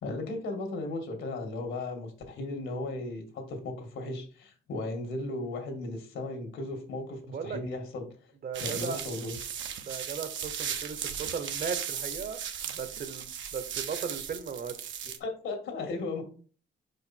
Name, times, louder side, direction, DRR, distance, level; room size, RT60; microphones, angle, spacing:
voice 1, 0.0-8.1 8.6-9.3 15.2-16.2, left 2 dB, 75° left, 2.1 m, -36 dB
voice 2, 7.2-7.6 8.4-9.0 9.8-14.9, right 6 dB, 50° right, 1.1 m, -37 dB
sound 1, 8.5-15.2, right 8 dB, 70° right, 0.9 m, -37 dB
5.2 x 5.2 x 4.3 m
cardioid pair, 90°, 20 cm